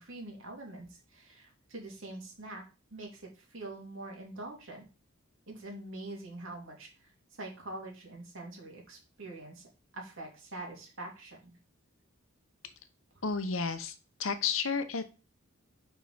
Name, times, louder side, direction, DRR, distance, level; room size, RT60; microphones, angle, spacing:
voice 1, 0.0-2.6 2.9-4.9 5.5-9.7 9.9-11.5 13.5-13.7, right 2 dB, 65° right, 0 dB, 2.8 m, -44 dB
voice 2, 13.2-13.9 14.2-15.0, left 5 dB, 70° left, 10 dB, 0.9 m, -31 dB
5.6 x 4.7 x 5.7 m, 0.32 s
head